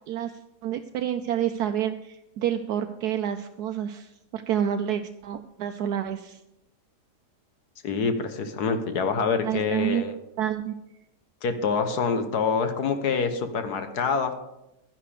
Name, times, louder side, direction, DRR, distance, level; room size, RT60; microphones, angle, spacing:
voice 1, 0.6-6.4 9.4-10.0 10.4-10.7, right 10 dB, 75° right, 7 dB, 1.1 m, -28 dB
voice 2, 7.8-10.1 11.4-14.4, left 5 dB, 70° left, 8 dB, 1.5 m, -26 dB
11.5 x 10.5 x 5.0 m, 0.91 s
omnidirectional pair, 1.7 m